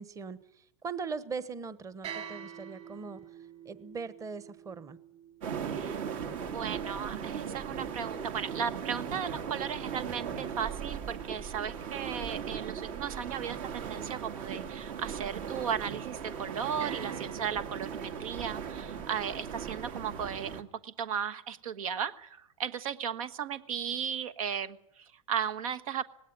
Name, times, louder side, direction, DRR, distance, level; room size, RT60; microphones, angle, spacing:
voice 1, 0.0-3.2 3.6-5.0, right 5 dB, 20° right, 15 dB, 1.1 m, -40 dB
sound 1, 2.0-8.2 16.8-18.7, right 8 dB, 35° right, 5.3 m, -48 dB
sound 2, 5.4-20.6, right 7 dB, 60° right, 2.4 m, -38 dB
voice 2, 5.7-6.0 6.3-26.0, right 8 dB, 80° right, 13 dB, 1.4 m, -36 dB
19.0 x 17.5 x 9.7 m, 0.79 s
hypercardioid pair, 125°, 18 cm